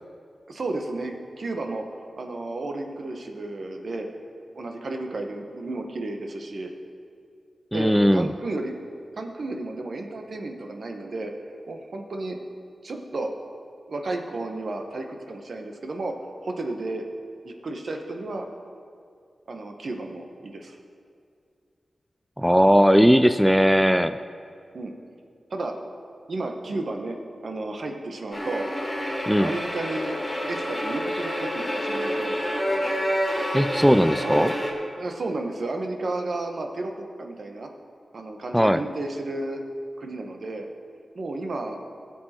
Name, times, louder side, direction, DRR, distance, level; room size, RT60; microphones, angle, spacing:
voice 1, 0.5-1.8 2.2-4.1 4.5-6.7 7.7-8.7 9.2-11.3 11.7-12.4 12.8-13.3 13.9-16.1 16.4-17.0 17.4-18.5 19.5-20.8 24.7-24.9 25.5-25.7 26.3-27.2 27.4-28.7 29.4-30.2 30.5-32.4 34.2-34.5 35.0-37.7 38.1-39.6 40.0-40.7 41.1-41.8, right 2 dB, 65° right, 3 dB, 1.2 m, -32 dB
voice 2, 7.7-8.3 22.4-24.2 29.3-29.5 33.5-34.5 38.5-38.8, equal, ahead, 10 dB, 0.3 m, -18 dB
sound 1, 28.3-34.7, equal, 20° left, 2.8 m, -28 dB
17.0 x 7.5 x 4.4 m, 2.3 s
wide cardioid pair, 75°, 0 cm